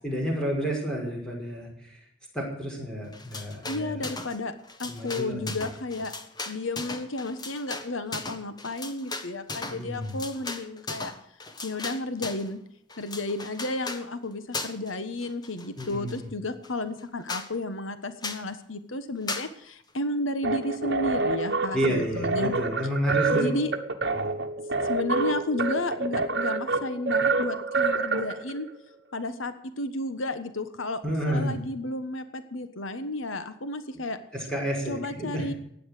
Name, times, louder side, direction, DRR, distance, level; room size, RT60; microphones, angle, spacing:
voice 1, 0.0-2.0 2.3-4.1 4.9-5.6 9.7-10.1 15.8-16.3 21.7-23.5 24.1-24.3 31.0-31.5 34.3-35.4, right 1 dB, 5° left, -1 dB, 5.4 m, -30 dB
sound 1, 3.1-4.4 4.6-12.5 12.9-14.0 14.5-14.9 15.2-16.2 16.6-16.7 17.0-17.1 17.3-17.5 18.2-18.5 19.3-19.5, left 3 dB, 20° left, 1.3 m, -37 dB
voice 2, 3.7-4.5 4.8-6.1 6.5-11.1 11.6-12.6 13.0-22.5 23.3-23.7 24.8-28.7 29.1-31.0 31.3-34.2 34.8-35.5, left 2 dB, 85° left, 11 dB, 1.3 m, -32 dB
sound 2, 20.4-28.7, right 3 dB, 55° right, 1.5 m, -27 dB
16.0 x 10.5 x 6.7 m, 0.72 s
head